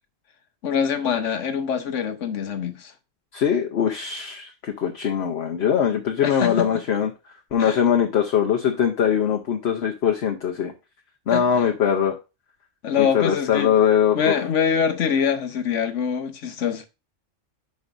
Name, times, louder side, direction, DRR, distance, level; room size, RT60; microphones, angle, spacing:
voice 1, 0.6-2.9 6.2-6.7 7.6-7.8 11.3-11.7 12.8-13.7 14.1-16.9, left 7 dB, 75° left, 1.3 m, -24 dB
voice 2, 3.3-7.1 7.5-10.7 11.3-12.1 13.0-14.3, left 8 dB, 60° left, 1.1 m, -21 dB
10.5 x 4.7 x 2.6 m
omnidirectional pair, 1.3 m